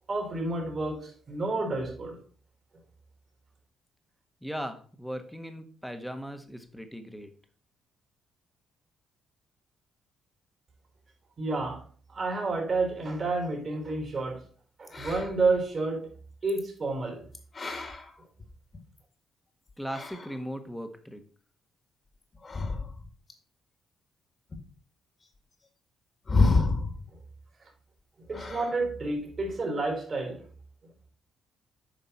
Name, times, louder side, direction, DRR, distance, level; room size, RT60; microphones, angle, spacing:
voice 1, 0.1-2.2 11.4-11.8 12.1-14.4 14.8-16.1 16.4-17.3 28.3-30.4, right 3 dB, 40° right, 3.8 m, -30 dB
voice 2, 4.4-7.3 19.8-21.2, equal, ahead, 1.4 m, -38 dB
sound 1, 14.8-15.6 16.4-16.6 17.3-19.0 19.7-20.4 22.3-23.3 24.5-24.6 26.2-27.1 28.3-28.9 29.2-29.5, left 3 dB, 35° left, 1.9 m, -29 dB
9.2 x 5.3 x 4.1 m
cardioid pair, 90°, 0 cm